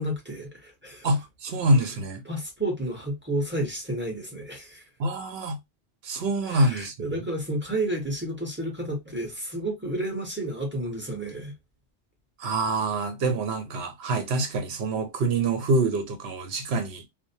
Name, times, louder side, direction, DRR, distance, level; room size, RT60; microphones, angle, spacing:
voice 1, 0.0-1.1 2.2-4.8 6.5-11.5, right 1 dB, 10° right, 0.9 m, -31 dB
voice 2, 1.0-2.2 5.0-5.6 6.0-6.9 12.4-17.0, right 2 dB, 70° right, 1.0 m, -25 dB
2.6 x 2.0 x 2.6 m
omnidirectional pair, 1.2 m